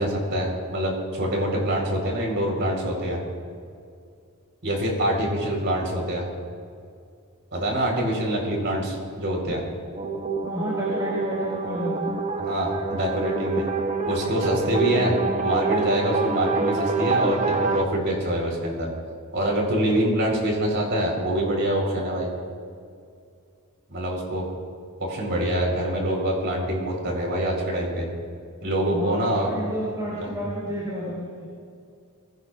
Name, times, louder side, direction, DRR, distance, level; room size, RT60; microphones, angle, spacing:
voice 1, 0.0-3.2 4.6-6.3 7.5-9.6 12.4-13.7 14.0-15.1 15.4-18.9 19.3-22.3 23.9-24.5 25.0-28.1 28.6-29.5 30.1-30.3, right 1 dB, 55° right, 0 dB, 4.1 m, -25 dB
sound 1, 9.9-17.8, right 4 dB, 35° right, 0.8 m, -26 dB
voice 2, 10.4-12.3 28.9-31.4, equal, 15° right, -7 dB, 4.5 m, -31 dB
24.0 x 16.5 x 2.5 m, 2.3 s
head